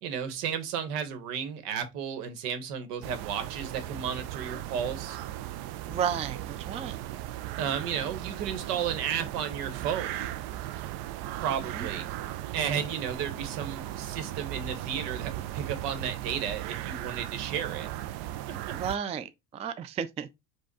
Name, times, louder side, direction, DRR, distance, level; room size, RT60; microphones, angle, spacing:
voice 1, 0.0-5.2 7.6-10.2 11.4-12.1 12.5-17.9, right 8 dB, 75° right, 1.3 m, -33 dB
sound 1, 3.0-19.0, right 13 dB, 55° right, 0.6 m, -37 dB
voice 2, 5.9-7.0 11.5-11.9 18.7-20.3, right 7 dB, 15° right, 0.3 m, -33 dB
4.9 x 2.5 x 4.0 m
hypercardioid pair, 75°, 47 cm